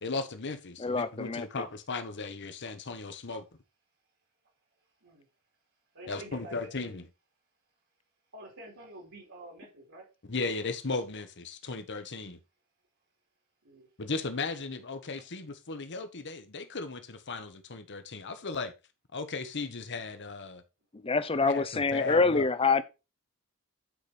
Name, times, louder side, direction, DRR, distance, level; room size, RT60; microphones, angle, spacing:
voice 1, 0.0-3.4 6.1-7.0 10.3-12.4 14.0-18.7 19.1-20.6 21.4-22.5, left 3 dB, 55° left, 1.2 m, -36 dB
voice 2, 0.8-1.7 20.9-22.8, left 4 dB, 25° left, 0.6 m, -26 dB
voice 3, 5.9-6.7 8.3-10.1 13.6-13.9, right 1 dB, 70° right, 3.1 m, -47 dB
9.5 x 5.0 x 4.3 m
head